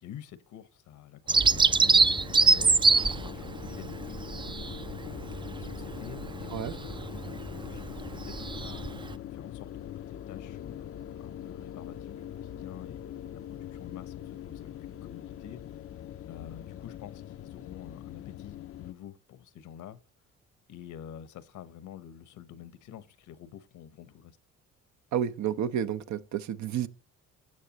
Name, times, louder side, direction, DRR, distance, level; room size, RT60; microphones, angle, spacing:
voice 1, 0.0-4.3 5.0-8.9 9.3-13.0 13.5-15.6 16.3-20.0 20.7-24.4, left 10 dB, 75° left, 1.0 m, -48 dB
sound 1, 1.3-18.9, left 10 dB, 50° left, 0.5 m, -42 dB
Bird vocalization bird call bird song, 1.3-9.1, right 4 dB, 15° right, 0.4 m, -25 dB
voice 2, 25.1-26.9, right 9 dB, 65° right, 0.8 m, -30 dB
16.0 x 6.6 x 2.9 m
cardioid pair, 90°, 30 cm